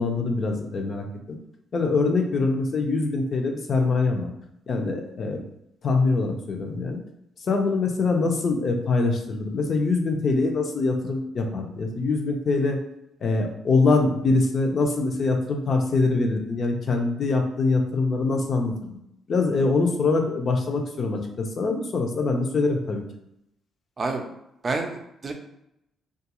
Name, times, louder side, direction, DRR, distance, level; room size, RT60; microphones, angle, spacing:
voice 1, 0.0-1.4 1.7-4.3 4.7-5.4 5.8-7.0 7.5-12.8 13.2-19.0 19.3-23.0, left 3 dB, 50° left, 3 dB, 0.5 m, -24 dB
voice 2, 24.6-25.3, right 3 dB, 35° right, 3 dB, 0.5 m, -28 dB
2.4 x 2.3 x 2.9 m, 0.81 s
cardioid pair, 90°, 0 cm